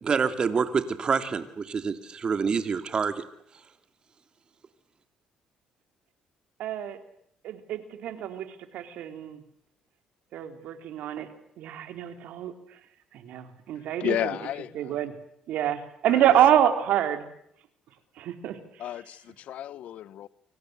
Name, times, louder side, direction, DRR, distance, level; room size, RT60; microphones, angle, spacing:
voice 1, 0.0-3.3, right 5 dB, 40° right, 9 dB, 2.9 m, -27 dB
voice 2, 6.6-7.0 7.4-8.5 8.7-9.4 10.3-11.3 11.6-12.5 13.2-14.4 14.7-15.1 15.5-17.2 18.2-18.6, right 10 dB, 75° right, 8 dB, 3.6 m, -26 dB
voice 3, 14.0-14.7 16.1-16.2 18.8-19.2 19.5-20.3, left 11 dB, 70° left, 19 dB, 1.0 m, -31 dB
28.5 x 25.5 x 8.0 m, 0.73 s
cardioid pair, 100°, 2 cm